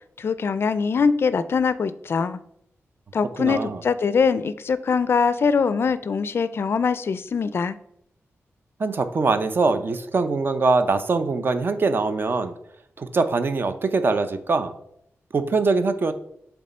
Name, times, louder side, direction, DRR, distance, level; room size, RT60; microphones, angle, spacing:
voice 1, 0.2-2.4 3.1-7.8, left 5 dB, 50° left, 14 dB, 0.3 m, -22 dB
voice 2, 3.4-3.8 8.8-12.5 13.0-14.7 15.3-16.1, right 3 dB, 45° right, 10 dB, 0.6 m, -22 dB
7.6 x 3.5 x 4.2 m, 0.72 s
wide cardioid pair, 140°, 5 cm